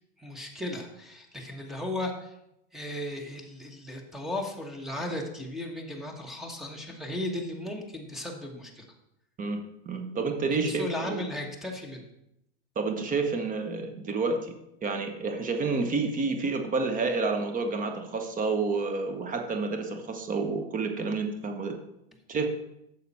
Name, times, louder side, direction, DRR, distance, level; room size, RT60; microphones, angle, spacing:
voice 1, 0.2-2.3 2.7-8.9 10.5-12.1, left 1 dB, ahead, 2 dB, 1.4 m, -36 dB
voice 2, 9.9-11.2 12.8-14.5 14.8-21.8 22.3-22.4, right 4 dB, 25° right, 5 dB, 1.1 m, -29 dB
9.4 x 6.7 x 4.3 m, 0.81 s
hypercardioid pair, 115°, 30 cm